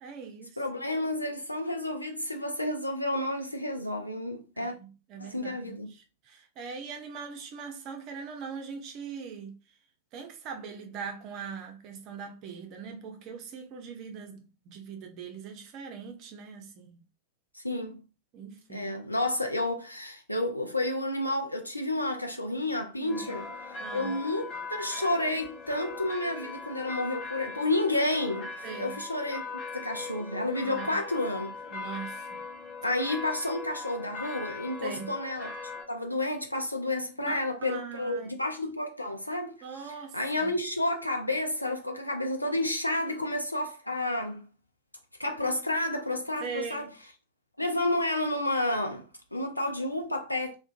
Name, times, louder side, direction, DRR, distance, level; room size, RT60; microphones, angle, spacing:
voice 1, 0.0-0.6 4.6-9.5 10.1-17.0 18.3-18.9 23.0-23.3 23.8-24.2 28.6-29.0 30.6-31.0 31.7-32.4 34.8-35.1 37.3-37.4 37.6-38.3 39.6-40.5 46.4-46.9, right 6 dB, 40° right, 0.5 m, -41 dB
voice 2, 0.6-4.8 5.2-5.9 17.5-18.0 18.7-23.5 23.9-29.4 29.7-31.5 32.8-44.5 45.2-46.9 47.6-50.6, left 1 dB, 85° left, 0.4 m, -31 dB
sound 1, 23.1-35.8, left 4 dB, 30° left, 0.9 m, -40 dB
2.5 x 2.1 x 2.4 m
figure-of-eight pair, 90°, 0 cm